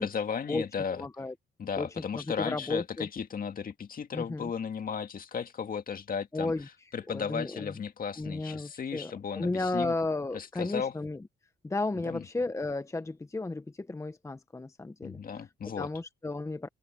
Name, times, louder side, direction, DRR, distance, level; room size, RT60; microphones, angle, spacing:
voice 1, 0.0-1.1 1.6-6.5 6.9-9.9 10.3-10.9 12.0-12.3 15.0-15.9, left 6 dB, 45° left, 2.0 m, -35 dB
voice 2, 1.0-1.3 1.8-1.9 2.1-3.1 4.1-4.5 6.3-6.7 7.1-7.7 8.2-11.2 11.6-15.2 15.7-16.7, left 2 dB, 15° left, 0.9 m, -33 dB
cardioid pair, 90°, 20 cm